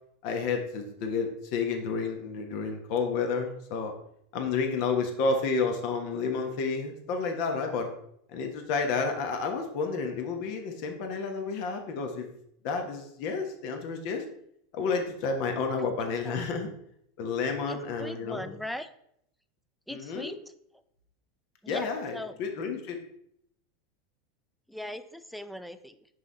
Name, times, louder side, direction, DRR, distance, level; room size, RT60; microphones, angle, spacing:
voice 1, 0.2-3.9 4.3-7.9 8.3-12.3 12.6-14.2 14.7-16.7 17.2-18.5 19.9-20.3 21.7-23.0, left 4 dB, 60° left, 4 dB, 1.2 m, -30 dB
voice 2, 15.8-16.4 17.7-18.9 19.9-20.4 21.6-22.4 24.7-26.1, left 1 dB, ahead, 11 dB, 0.5 m, -40 dB
5.5 x 4.9 x 4.0 m, 0.73 s
hypercardioid pair, 90°, 0 cm